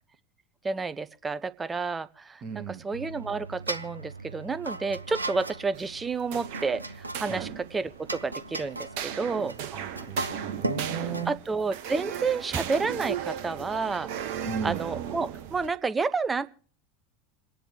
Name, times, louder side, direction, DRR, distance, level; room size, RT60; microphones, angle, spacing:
voice 1, 0.6-2.4 2.7-6.8 7.2-9.5 11.3-14.1 14.6-16.5, right 4 dB, 15° right, 17 dB, 0.8 m, -30 dB
voice 2, 2.4-2.8 7.3-7.5 9.7-11.3 14.4-14.8, right 7 dB, 35° right, 3 dB, 1.5 m, -35 dB
sound 1, 2.9-11.3, right 2 dB, 85° right, 0.7 m, -37 dB
sound 2, 5.7-15.7, right 9 dB, 55° right, 1.2 m, -37 dB
27.5 x 10.0 x 3.3 m, 0.43 s
figure-of-eight pair, 75°, 0 cm